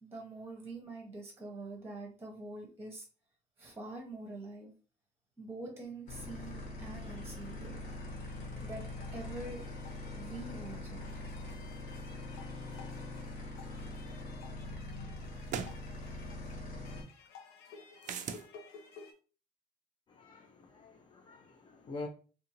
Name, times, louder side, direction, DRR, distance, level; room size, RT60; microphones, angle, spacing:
voice 1, 0.0-3.1 3.6-4.7 5.4-7.8 8.3-11.3 12.4-12.5, right 2 dB, 15° right, 1 dB, 0.8 m, -45 dB
sound 1, 6.1-17.0, left 2 dB, 55° left, 1.2 m, -43 dB
sound 2, 7.1-19.1, left 5 dB, 80° left, 0.8 m, -56 dB
sound 3, 14.1-14.2 15.5-15.8 18.0-18.5, right 8 dB, 45° right, 0.4 m, -38 dB
voice 2, 20.1-22.1, left 3 dB, 30° left, 2 dB, 0.5 m, -46 dB
2.6 x 2.6 x 2.9 m, 0.36 s
cardioid pair, 110°, 17 cm